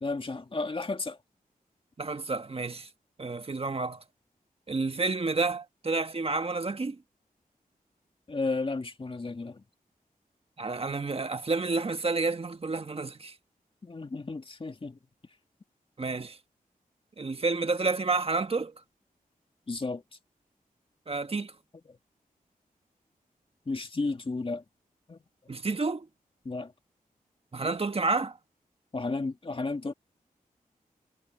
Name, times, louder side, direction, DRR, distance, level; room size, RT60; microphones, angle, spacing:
voice 1, 0.0-1.2 8.3-9.6 13.8-15.0 19.7-20.0 21.9-22.0 23.7-24.6 25.1-25.2 26.4-26.7 28.9-29.9, left 3 dB, 35° left, 2.0 m, -33 dB
voice 2, 2.0-2.9 3.2-4.0 4.7-7.0 10.6-13.3 16.0-16.4 17.2-18.7 21.1-21.5 25.5-26.1 27.5-28.4, right 3 dB, 40° right, 1.5 m, -30 dB
cardioid pair, 75°, 15 cm